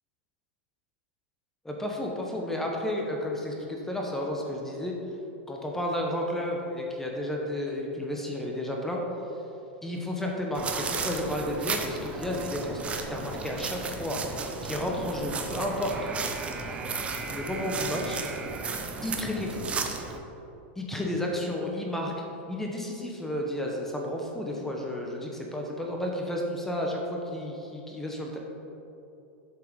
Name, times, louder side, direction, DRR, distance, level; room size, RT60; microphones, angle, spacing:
voice 1, 1.6-4.9 5.5-9.0 9.8-14.2 14.6-16.1 17.3-18.2 19.0-19.7 20.8-22.1 22.5-28.4, left 1 dB, 5° left, -1 dB, 0.9 m, -32 dB
sound 1, 10.5-20.2, right 4 dB, 20° right, 0.6 m, -34 dB
7.7 x 5.6 x 5.1 m, 2.9 s
supercardioid pair, 140°, 6 cm